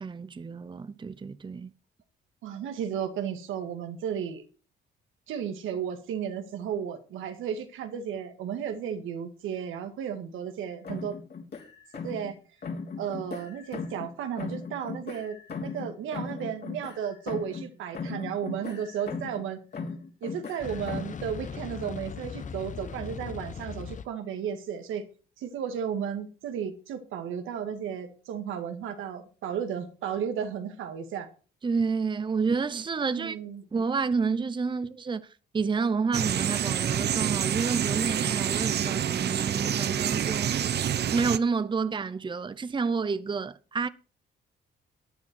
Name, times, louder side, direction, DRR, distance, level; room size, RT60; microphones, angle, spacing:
voice 1, 0.0-1.7 31.6-33.4 33.7-35.3 35.5-40.8 41.1-43.9, right 5 dB, 25° right, 0.7 m, -29 dB
voice 2, 2.4-4.4 5.3-11.2 12.0-12.4 13.0-19.6 20.2-25.0 25.4-31.3 33.1-33.6, right 8 dB, 85° right, 2.1 m, -34 dB
sound 1, 10.8-12.3 12.6-14.1 14.4-17.7 17.9-19.5 19.7-21.2, left 4 dB, 55° left, 3.8 m, -38 dB
sound 2, 20.6-24.1, left 6 dB, 40° left, 0.9 m, -38 dB
sound 3, 36.1-41.4, right 9 dB, 55° right, 0.8 m, -27 dB
13.5 x 9.5 x 4.6 m
cardioid pair, 90°, 20 cm